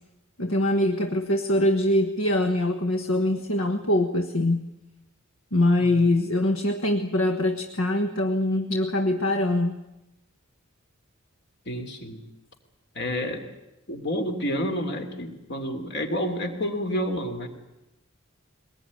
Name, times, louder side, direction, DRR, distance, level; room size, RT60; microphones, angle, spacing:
voice 1, 0.4-4.7 5.5-9.8, left 1 dB, 70° left, 7 dB, 1.3 m, -23 dB
voice 2, 5.8-6.1 11.6-12.2 12.9-13.4 13.9-17.5, equal, 55° left, 6 dB, 3.3 m, -29 dB
22.5 x 20.0 x 9.8 m, 0.96 s
head